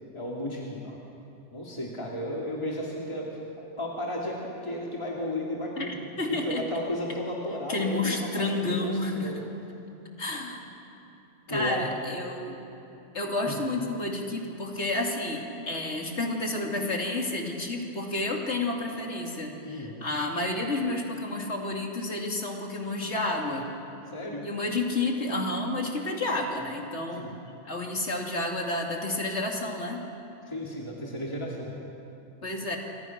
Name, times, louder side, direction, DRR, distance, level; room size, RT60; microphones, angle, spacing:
voice 1, 0.1-1.0 1.5-9.4 11.5-11.8 13.4-13.6 19.6-20.0 24.1-24.4 27.1-27.4 30.4-31.7, left 1 dB, 25° left, -3 dB, 2.8 m, -34 dB
voice 2, 6.2-6.6 7.7-9.4 10.2-10.7 11.5-12.6 13.1-23.6 24.4-27.3 27.6-30.0 32.4-32.8, left 2 dB, 70° left, 1 dB, 3.1 m, -30 dB
27.5 x 25.0 x 6.0 m, 2.9 s
omnidirectional pair, 1.2 m